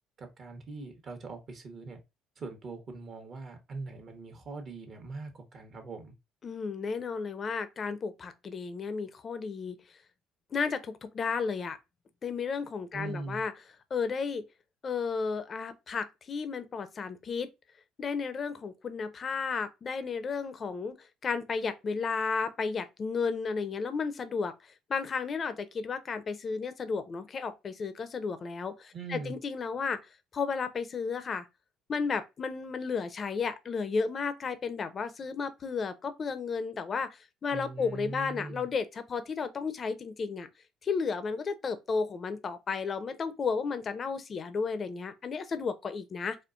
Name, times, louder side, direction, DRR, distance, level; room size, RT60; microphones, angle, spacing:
voice 1, 0.2-2.0 2.4-6.1 12.9-13.4 28.9-29.3 37.5-38.7, right 3 dB, 45° right, 1.2 m, -41 dB
voice 2, 6.4-9.8 10.5-11.8 12.2-13.5 13.9-14.4 14.8-17.5 18.0-24.5 24.9-30.0 30.3-31.5 31.9-40.5 40.8-46.4, left 5 dB, 40° left, 0.6 m, -33 dB
4.3 x 2.5 x 2.5 m
cardioid pair, 100°, 0 cm